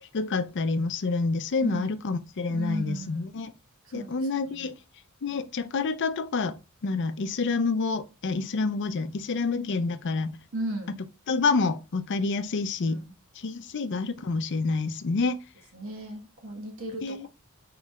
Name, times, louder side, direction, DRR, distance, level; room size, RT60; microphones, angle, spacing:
voice 1, 0.1-3.5 3.9-4.8 5.2-10.4 11.3-13.0 13.4-15.4 17.0-17.3, left 4 dB, 55° left, 0.5 m, -28 dB
voice 2, 1.6-1.9 2.5-3.3 3.8-4.1 4.4-4.7 10.5-11.0 12.9-13.1 15.7-17.3, right 1 dB, 65° right, 1.4 m, -36 dB
3.8 x 3.4 x 3.1 m
head